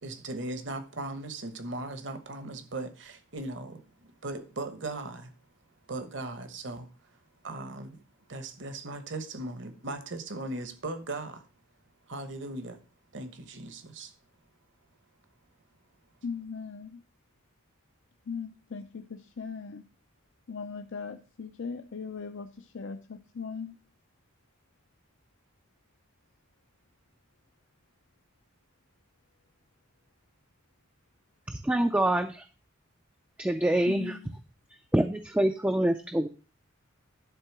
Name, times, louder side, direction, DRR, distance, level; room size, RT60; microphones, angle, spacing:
voice 1, 0.0-5.3 5.9-7.2 7.4-8.0 8.3-11.5 12.1-12.8 13.1-14.1, right 2 dB, 60° right, 1.2 m, -38 dB
voice 2, 16.2-17.0 18.3-19.8 20.5-23.8 33.9-34.3, left 5 dB, 65° left, 0.5 m, -39 dB
voice 3, 31.5-32.5 33.4-34.2 34.9-36.3, right 1 dB, 10° right, 0.4 m, -26 dB
11.0 x 3.8 x 6.0 m
head